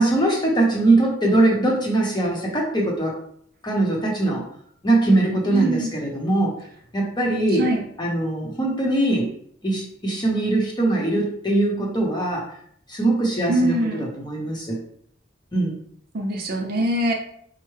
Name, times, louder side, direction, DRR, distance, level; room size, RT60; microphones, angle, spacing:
voice 1, 0.0-3.2 3.6-4.4 4.8-6.6 6.9-7.7 8.0-9.3 9.6-12.4 12.9-14.8 15.5-15.8, right 2 dB, 25° left, -1 dB, 0.8 m, -21 dB
voice 2, 5.5-5.9 7.5-7.8 13.5-14.1 16.1-17.1, right 1 dB, 55° right, 2 dB, 0.6 m, -23 dB
4.4 x 2.1 x 3.1 m, 0.65 s
head